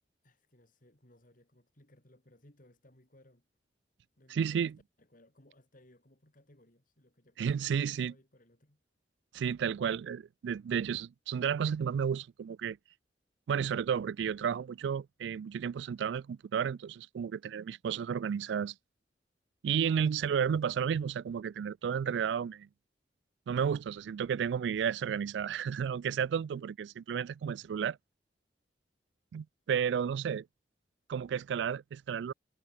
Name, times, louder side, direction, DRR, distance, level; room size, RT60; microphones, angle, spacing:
voice 1, 0.2-3.4 4.2-4.7 5.0-8.8 26.5-26.7, left 1 dB, 50° left, 4.1 m, -62 dB
voice 2, 4.3-4.8 7.4-8.1 9.3-12.8 13.5-18.7 19.6-22.7 23.5-28.0 29.3-30.4 31.1-32.3, right 7 dB, 75° right, 0.3 m, -32 dB
head